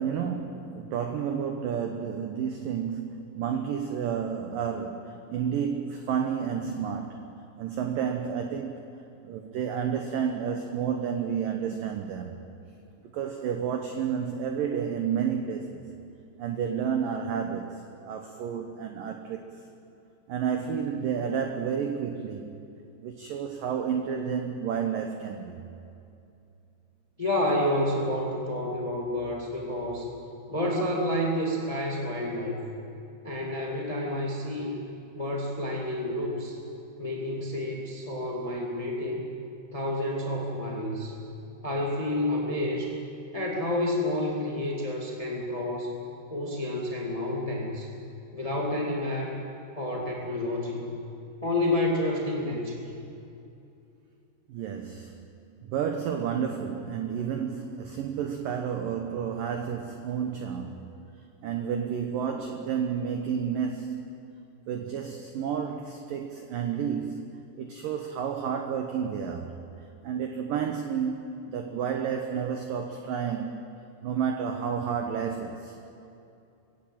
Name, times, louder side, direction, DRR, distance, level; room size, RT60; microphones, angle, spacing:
voice 1, 0.0-8.8 9.2-12.4 13.0-15.8 16.4-19.6 20.3-22.6 23.0-25.6 54.5-55.3 55.6-60.9 61.4-64.2 64.7-67.3 67.6-69.6 70.0-75.8, right 7 dB, 75° right, 5 dB, 2.0 m, -31 dB
voice 2, 27.2-30.1 30.5-32.6 33.2-34.7 35.1-36.6 37.0-39.3 39.7-41.1 41.6-42.9 43.3-45.9 46.3-47.9 48.3-49.4 49.7-50.8 51.4-52.8, left 1 dB, 30° left, -2 dB, 0.6 m, -29 dB
22.5 x 16.5 x 9.0 m, 2.6 s
omnidirectional pair, 5.4 m